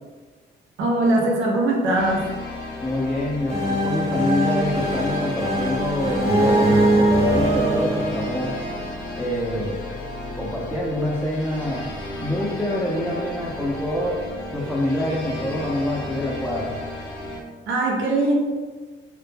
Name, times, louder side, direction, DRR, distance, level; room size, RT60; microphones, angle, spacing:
voice 1, 0.8-2.3 17.7-18.4, right 2 dB, 75° right, -1 dB, 0.6 m, -21 dB
sound 1, 1.9-17.4, left 1 dB, 90° left, 0.6 m, -34 dB
voice 2, 2.8-8.6 9.2-9.9 10.3-11.9 12.2-14.3 14.5-16.8, left 1 dB, 5° left, -6 dB, 0.4 m, -26 dB
sound 2, 3.5-9.2, right 1 dB, 15° right, 1.0 m, -22 dB
2.0 x 2.0 x 3.2 m, 1.4 s
cardioid pair, 90°, 20 cm